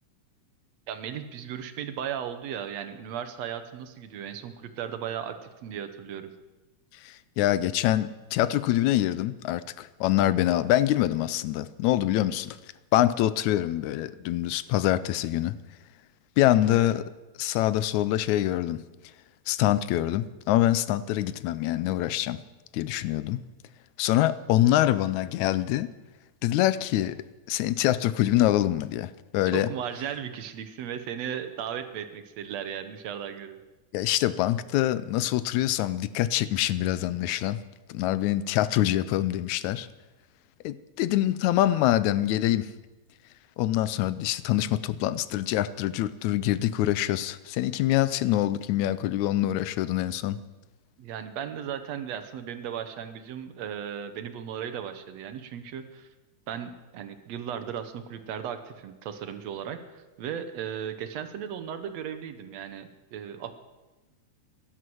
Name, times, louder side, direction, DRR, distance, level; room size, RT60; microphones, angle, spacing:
voice 1, 0.9-6.3 16.6-16.9 29.5-33.6 51.0-56.1 56.5-63.5, right 8 dB, 70° right, 9 dB, 2.0 m, -36 dB
voice 2, 7.0-12.6 12.9-15.6 16.4-17.1 17.4-18.8 19.5-22.4 22.7-23.4 24.0-25.9 26.4-29.7 33.9-37.6 37.9-39.9 40.6-42.7 43.6-50.4, left 13 dB, 80° left, 16 dB, 2.0 m, -25 dB
15.5 x 11.5 x 7.7 m, 1.1 s
omnidirectional pair, 3.4 m